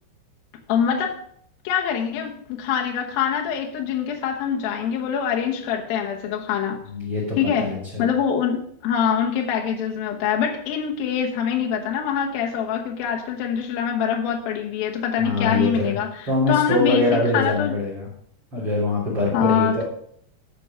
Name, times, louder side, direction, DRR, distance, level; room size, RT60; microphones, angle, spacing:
voice 1, 0.7-1.2 1.6-6.8 7.4-17.8 19.3-19.8, left 8 dB, 80° left, 1 dB, 2.1 m, -24 dB
voice 2, 6.9-8.1 15.2-16.0 16.3-18.1 18.5-19.8, left 2 dB, 25° right, -2 dB, 2.9 m, -23 dB
13.5 x 5.7 x 5.6 m, 0.65 s
omnidirectional pair, 5.9 m